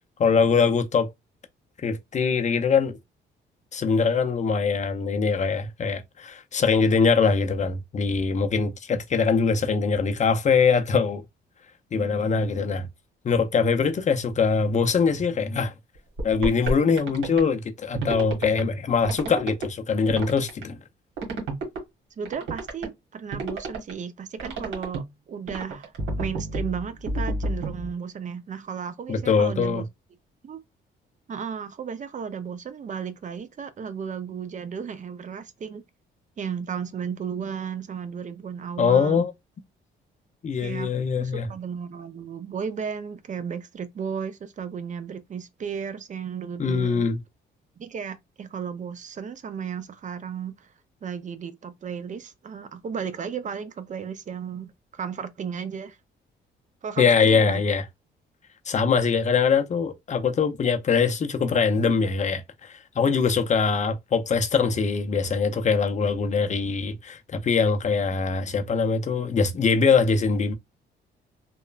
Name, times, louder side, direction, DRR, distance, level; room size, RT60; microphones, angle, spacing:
voice 1, 0.2-1.1 1.8-3.0 3.7-11.2 11.9-12.9 13.2-15.7 16.2-20.8 29.1-29.8 38.8-39.3 40.4-41.5 46.6-47.2 57.0-57.8 58.7-70.5, left 5 dB, 35° left, 0.5 m, -22 dB
voice 2, 11.9-12.4 22.2-25.9 26.2-29.8 30.4-30.6 31.3-35.8 36.4-39.2 40.6-40.9 41.2-47.1 47.8-50.7 51.0-56.0 56.8-57.6, right 7 dB, 40° right, 0.5 m, -34 dB
sound 1, 16.2-17.4 17.9-18.6 19.0-19.6 20.1-20.6 21.2-21.8 22.2-22.9 23.3-23.9 24.4-25.0 25.5-27.9, right 2 dB, 80° right, 1.3 m, -30 dB
3.0 x 2.1 x 2.3 m
cardioid pair, 90°, 20 cm